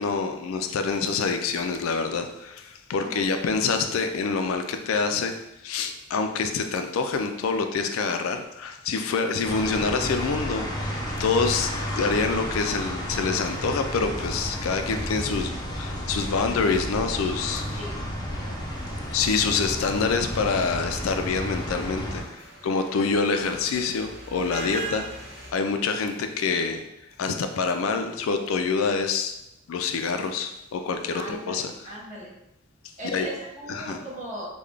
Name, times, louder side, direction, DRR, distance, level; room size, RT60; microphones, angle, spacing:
voice 1, 0.0-5.4 5.6-11.7 12.0-17.8 19.1-25.0 25.5-26.8 27.2-29.3 29.7-31.7 33.1-33.3 33.7-34.0, left 4 dB, 85° left, 7 dB, 0.4 m, -26 dB
sound 1, 9.4-22.2, equal, 20° left, 0.6 m, -32 dB
sound 2, 18.6-25.5, right 2 dB, 55° right, 1.1 m, -42 dB
voice 2, 31.1-32.3 33.0-34.5, right 1 dB, 35° right, -7 dB, 1.2 m, -38 dB
3.7 x 2.2 x 3.3 m, 0.88 s
head